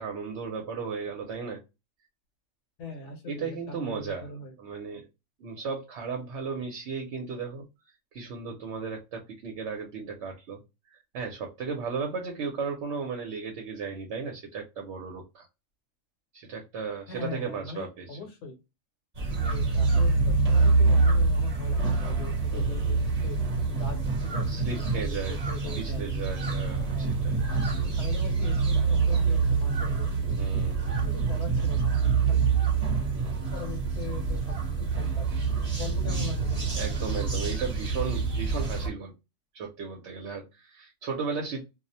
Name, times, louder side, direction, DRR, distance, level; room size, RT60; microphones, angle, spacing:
voice 1, 0.0-1.6 3.3-4.3 4.6-5.1 5.4-7.7 8.1-10.6 11.1-15.5 16.3-18.2 22.5-23.1 24.5-25.4 25.8-27.4 27.8-27.9 30.4-31.1 33.1-33.5 36.8-39.1 39.5-41.6, right 5 dB, 65° right, 3 dB, 0.8 m, -35 dB
voice 2, 2.8-4.5 17.1-18.6 19.3-23.4 23.7-24.4 24.7-26.0 26.9-27.1 27.8-30.4 31.0-32.6 33.5-35.3 35.8-36.7, left 3 dB, 70° left, 2 dB, 1.0 m, -41 dB
sound 1, 19.1-38.9, right 4 dB, 35° right, 0.7 m, -26 dB
2.4 x 2.0 x 2.6 m, 0.25 s
omnidirectional pair, 1.3 m